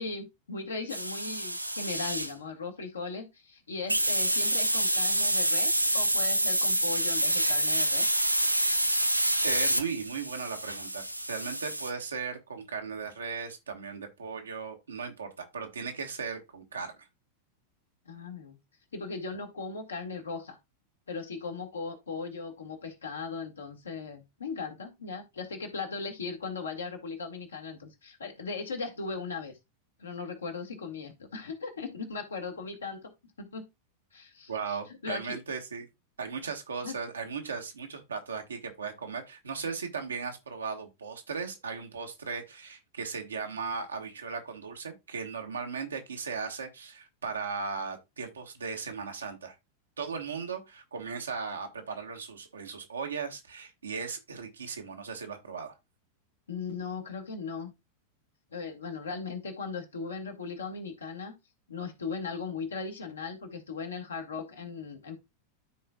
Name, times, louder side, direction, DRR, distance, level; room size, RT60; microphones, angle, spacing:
voice 1, 0.0-8.1 18.1-18.6 18.9-20.6 21.1-29.5 30.0-33.1 33.4-33.7 34.1-35.4 36.8-36.9 56.5-57.7 58.5-61.3 61.7-65.2, left 4 dB, 70° left, 1.7 m, -38 dB
sound 1, 0.9-2.3 3.9-11.9, right 1 dB, 90° right, 0.5 m, -27 dB
voice 2, 9.4-16.9 34.5-35.9 36.2-49.5 50.0-55.7, right 5 dB, 75° right, 1.4 m, -37 dB
13.0 x 4.4 x 2.3 m
figure-of-eight pair, 90°, 0 cm